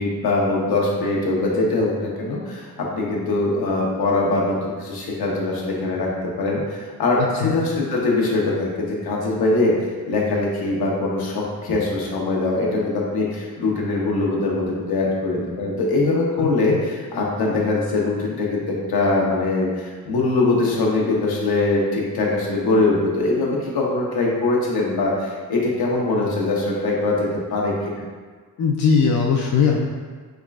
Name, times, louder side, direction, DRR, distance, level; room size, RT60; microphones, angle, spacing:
voice 1, 0.0-9.7 10.1-28.0, left 2 dB, 70° left, -3 dB, 0.9 m, -22 dB
voice 2, 16.4-16.8 28.6-29.9, left 5 dB, 50° left, -1 dB, 0.4 m, -20 dB
3.5 x 3.1 x 2.3 m, 1.5 s
cardioid pair, 65°, 38 cm